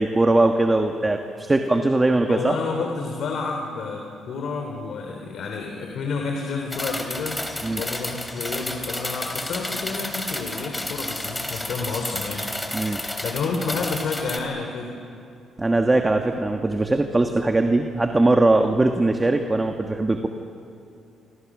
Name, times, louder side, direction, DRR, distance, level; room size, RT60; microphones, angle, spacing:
voice 1, 0.0-2.5 7.6-7.8 12.7-13.0 15.6-20.3, right 2 dB, 20° right, 5 dB, 1.5 m, -20 dB
voice 2, 2.3-7.4 7.7-12.7 13.2-14.9, left 4 dB, 65° left, 1 dB, 3.3 m, -30 dB
sound 1, 6.7-14.4, left 1 dB, 10° left, 3.0 m, -31 dB
28.0 x 24.5 x 6.2 m, 2.5 s
cardioid pair, 90°, 0 cm